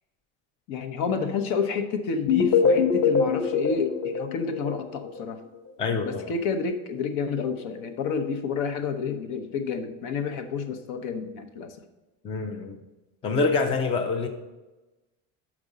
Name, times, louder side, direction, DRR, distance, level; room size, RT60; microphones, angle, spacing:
voice 1, 0.7-5.4 6.0-11.8, left 5 dB, 60° left, 7 dB, 0.9 m, -29 dB
sound 1, 2.3-5.2, left 5 dB, 35° left, 0.9 m, -23 dB
voice 2, 5.8-6.3 12.2-12.8 13.2-14.3, left 4 dB, 15° left, 4 dB, 0.4 m, -26 dB
6.1 x 5.2 x 6.5 m, 1.1 s
cardioid pair, 155°, 36 cm